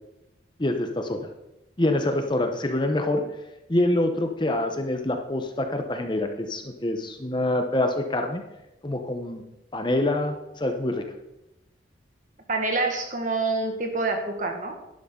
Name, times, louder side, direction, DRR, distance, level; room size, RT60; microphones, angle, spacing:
voice 1, 0.6-1.3 1.8-3.3 3.7-8.4 8.8-9.4 9.7-11.0, left 1 dB, 25° left, 5 dB, 0.9 m, -26 dB
voice 2, 12.5-14.8, right 3 dB, 45° right, 4 dB, 1.6 m, -26 dB
11.5 x 11.0 x 3.8 m, 0.94 s
head